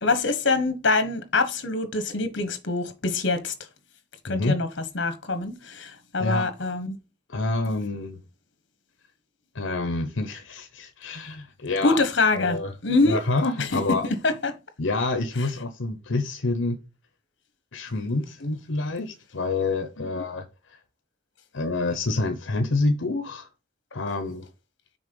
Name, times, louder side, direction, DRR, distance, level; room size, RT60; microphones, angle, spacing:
voice 1, 0.0-3.5 4.2-4.7 4.9-7.0 11.8-12.6 12.8-13.2 13.7-13.8 14.2-14.5 20.0-20.1, left 3 dB, 70° left, 1.3 m, -24 dB
voice 2, 4.3-4.6 6.2-6.5 7.3-8.2 9.5-12.0 12.3-12.7 13.0-14.1 14.8-16.8 17.7-20.8 21.5-23.5 23.9-24.5, left 2 dB, 85° left, 0.9 m, -27 dB
6.4 x 4.2 x 5.3 m
head